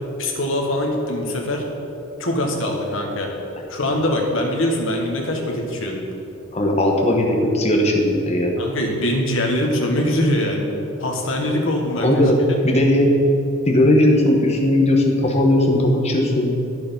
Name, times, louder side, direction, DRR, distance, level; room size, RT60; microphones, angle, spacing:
voice 1, 0.2-1.6 2.2-3.3 3.7-6.0 8.6-10.7 11.0-12.2, left 1 dB, 65° left, 1 dB, 1.4 m, -22 dB
voice 2, 6.5-8.5 11.9-12.4 12.6-13.1 13.7-16.5, left 1 dB, 30° left, 1 dB, 1.2 m, -17 dB
10.5 x 6.8 x 5.3 m, 2.9 s
head